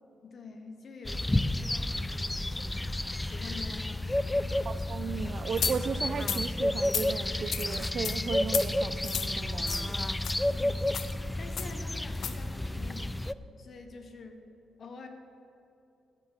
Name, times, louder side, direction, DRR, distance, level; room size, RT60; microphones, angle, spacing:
voice 1, 0.2-4.5 10.4-13.2 13.6-14.4 14.8-15.1, left 3 dB, 50° left, 1.5 m, -47 dB
sound 1, 1.0-13.3, left 1 dB, 10° left, 0.3 m, -31 dB
voice 2, 4.7-10.0, right 6 dB, 55° right, 0.4 m, -36 dB
sound 2, 5.6-5.7 6.2-6.4 6.8-7.1 7.5-7.7 8.0-8.2 8.5-8.7 9.0-9.3 9.7-9.9 10.2-10.3 10.9-11.1 11.6-11.7 12.1-12.3, left 8 dB, 65° left, 0.9 m, -32 dB
14.0 x 5.7 x 8.9 m
cardioid pair, 90°, 0 cm